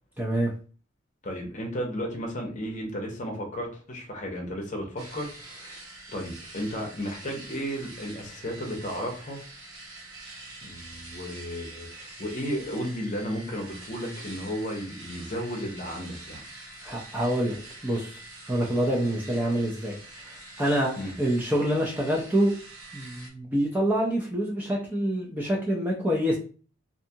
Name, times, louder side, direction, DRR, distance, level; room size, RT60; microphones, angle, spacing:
voice 1, 0.2-0.5 16.8-18.2 18.5-20.0 20.6-22.5 22.9-26.4, right 1 dB, 10° right, -3 dB, 0.4 m, -26 dB
voice 2, 1.2-5.8 6.1-9.4 10.6-16.4 21.0-21.1, equal, 35° left, 1 dB, 0.7 m, -34 dB
sound 1, 5.0-23.3, right 2 dB, 80° right, 0.9 m, -45 dB
2.6 x 2.3 x 2.7 m, 0.39 s
head